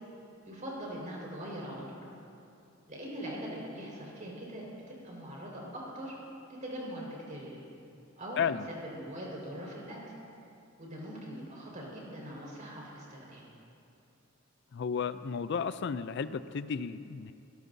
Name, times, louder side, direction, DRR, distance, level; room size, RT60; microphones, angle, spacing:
voice 1, 0.4-2.0 2.9-6.1 6.6-7.6 8.2-8.4 8.7-10.0 10.8-13.4, equal, 40° right, -4 dB, 4.7 m, -42 dB
voice 2, 14.7-17.3, left 6 dB, 55° left, 13 dB, 0.4 m, -33 dB
24.5 x 17.5 x 2.7 m, 2.7 s
head